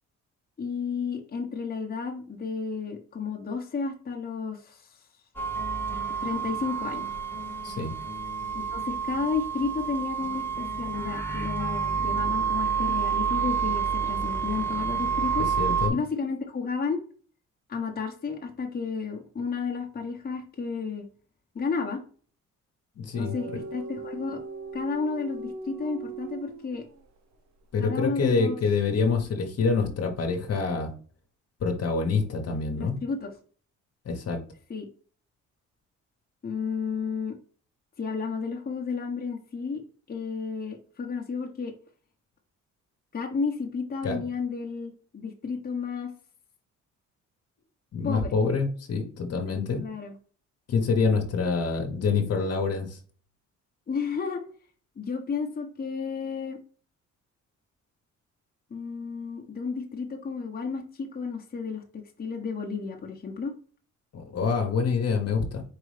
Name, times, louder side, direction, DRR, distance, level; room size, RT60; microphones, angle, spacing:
voice 1, 0.6-4.9 6.2-7.1 8.5-15.5 15.9-17.0 17.7-21.0 21.5-22.0 23.2-24.4 24.7-26.8 27.8-28.6 32.7-33.3 34.7-34.9 36.4-37.4 38.0-39.8 40.1-41.7 43.1-46.1 48.0-48.3 49.7-50.1 53.9-54.4 55.0-56.6 58.7-61.8 62.2-63.5, left 5 dB, 30° left, 1 dB, 1.0 m, -32 dB
sound 1, 5.4-15.9, right 6 dB, 5° left, 1.2 m, -29 dB
voice 2, 15.4-16.0 23.0-23.4 27.7-30.9 31.6-33.0 34.0-34.4 44.0-44.2 47.9-49.8 50.7-53.0 64.1-65.6, left 4 dB, 55° left, 5 dB, 1.1 m, -26 dB
sound 2, 23.1-27.2, right 3 dB, 65° right, 0.9 m, -39 dB
4.7 x 3.0 x 3.3 m, 0.43 s
cardioid pair, 90°, 30 cm